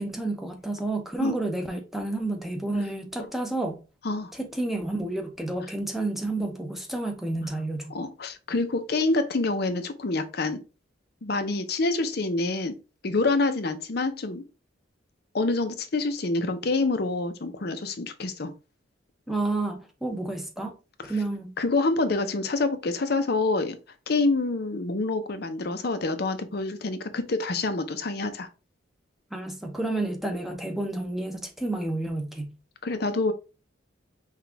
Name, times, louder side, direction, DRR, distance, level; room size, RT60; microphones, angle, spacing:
voice 1, 0.0-3.8 4.3-7.9 19.3-20.7 21.1-21.5 29.3-32.5, right 2 dB, ahead, 0.7 m, -30 dB
voice 2, 7.9-10.6 11.2-12.7 13.0-14.4 15.3-18.5 21.6-23.8 24.1-28.5 32.8-33.3, left 3 dB, 55° left, 0.6 m, -27 dB
5.8 x 2.4 x 3.4 m
head